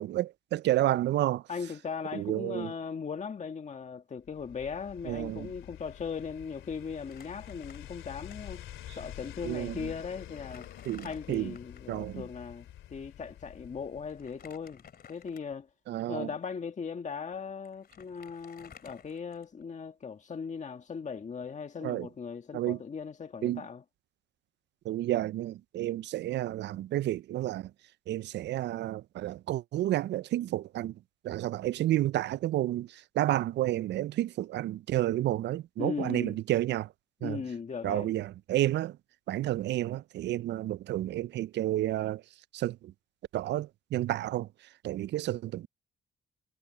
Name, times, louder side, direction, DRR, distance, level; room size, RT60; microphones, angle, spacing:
voice 1, 0.0-1.4 2.1-2.7 5.1-5.5 9.4-9.9 10.9-11.5 11.9-12.2 15.9-16.3 21.8-22.1 22.5-22.8 23.4-23.6 24.9-27.7 28.1-30.9 31.2-36.9 37.2-37.4 37.8-39.0 39.3-42.2 42.5-42.9 43.3-44.5 44.8-45.7, right 14 dB, 60° right, 0.4 m, -30 dB
voice 2, 1.5-8.6 8.9-10.7 11.0-14.8 15.1-15.7 16.1-23.8 35.8-36.4 37.2-38.1, left 6 dB, 35° left, 1.6 m, -38 dB
sound 1, 4.2-14.6 14.9-15.0, left 12 dB, 80° left, 3.2 m, -47 dB
Crumpling crinkling, 7.0-8.3 8.6-8.7 9.6-9.7 10.1-11.9 14.1-15.7 16.3-16.4 17.3-17.4 17.6-19.7, left 7 dB, 50° left, 2.6 m, -54 dB
cardioid pair, 90°, 20 cm